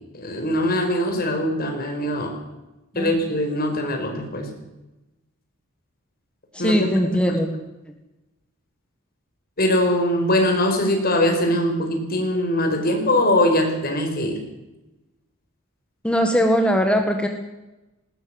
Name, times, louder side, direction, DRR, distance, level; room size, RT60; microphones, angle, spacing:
voice 1, 0.1-2.3 2.9-4.5 6.6-7.4 9.6-14.4, left 1 dB, 45° left, 4 dB, 5.1 m, -22 dB
voice 2, 6.5-7.5 16.0-17.3, equal, 5° left, 4 dB, 1.7 m, -20 dB
19.5 x 19.0 x 8.0 m, 1.0 s
head